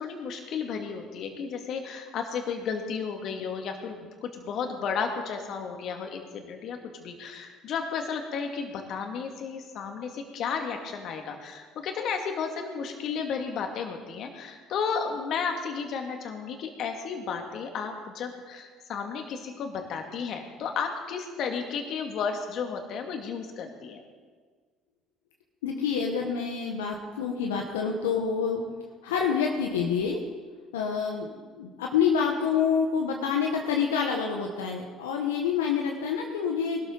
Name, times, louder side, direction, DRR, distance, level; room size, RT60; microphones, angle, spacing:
voice 1, 0.0-24.0, left 6 dB, 60° left, 4 dB, 2.3 m, -33 dB
voice 2, 25.6-28.6 29.0-30.2 30.7-36.9, left 6 dB, 85° left, 1 dB, 1.3 m, -27 dB
20.5 x 13.0 x 4.1 m, 1.5 s
hypercardioid pair, 60°, 0 cm